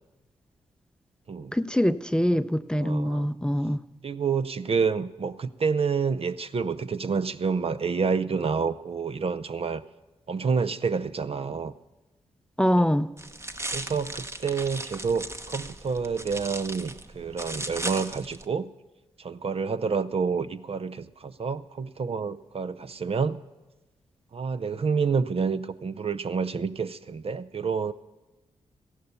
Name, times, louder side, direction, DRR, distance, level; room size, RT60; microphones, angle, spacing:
voice 1, 1.5-3.8 12.6-13.1, equal, 5° left, 12 dB, 0.6 m, -24 dB
voice 2, 2.8-3.3 4.0-9.8 10.3-11.7 12.8-12.9 13.7-18.7 19.2-23.4 24.3-27.9, right 5 dB, 50° right, 12 dB, 0.6 m, -28 dB
sound 1, 13.2-18.4, right 1 dB, 20° right, 1.0 m, -37 dB
14.5 x 11.0 x 6.9 m, 1.1 s
supercardioid pair, 40°, 13 cm